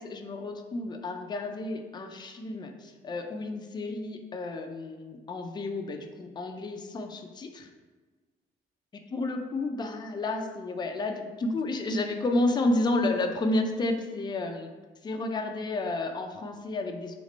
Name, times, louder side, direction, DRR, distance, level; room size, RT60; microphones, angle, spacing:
voice 1, 0.0-7.7 8.9-14.7 15.0-17.1, left 2 dB, 20° left, 5 dB, 0.4 m, -31 dB
2.9 x 2.4 x 4.2 m, 1.3 s
cardioid pair, 90°, 20 cm